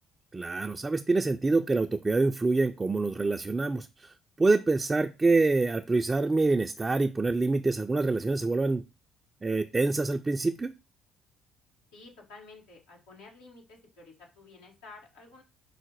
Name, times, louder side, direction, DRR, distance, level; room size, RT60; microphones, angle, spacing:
voice 1, 0.3-4.1 4.4-8.8 9.4-10.7, right 3 dB, 25° right, 4 dB, 0.4 m, -26 dB
voice 2, 11.9-15.4, left 3 dB, 85° left, -1 dB, 1.6 m, -51 dB
5.6 x 2.1 x 4.5 m, 0.27 s
hypercardioid pair, 60°, 0 cm